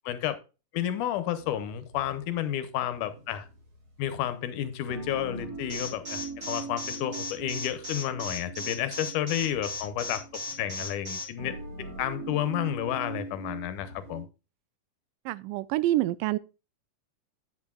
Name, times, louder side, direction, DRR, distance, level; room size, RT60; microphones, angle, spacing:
voice 1, 0.1-0.4 0.7-3.5 4.0-10.2 10.6-14.3, left 11 dB, 80° left, 2.2 m, -31 dB
sound 1, 1.4-14.2, right 3 dB, 50° right, 3.5 m, -43 dB
Alarm, 5.7-11.2, left 3 dB, 25° right, 4.1 m, -36 dB
voice 2, 15.3-16.4, right 15 dB, 90° right, 2.2 m, -27 dB
9.1 x 8.5 x 2.2 m
omnidirectional pair, 3.8 m